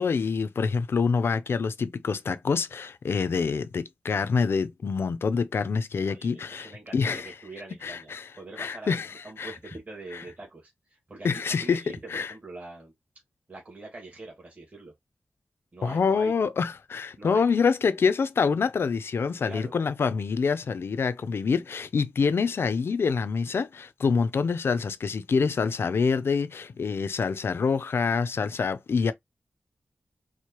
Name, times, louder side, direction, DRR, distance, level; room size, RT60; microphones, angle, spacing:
voice 1, 0.0-7.3 7.8-8.2 8.6-9.1 9.4-9.5 11.2-11.8 12.1-12.3 15.8-29.1, left 5 dB, 65° left, 0.4 m, -26 dB
voice 2, 6.0-12.9 13.5-14.9 15.7-16.3 17.2-17.6 19.5-19.7, right 2 dB, 35° right, 1.5 m, -44 dB
4.6 x 2.1 x 2.9 m
wide cardioid pair, 135°, 4 cm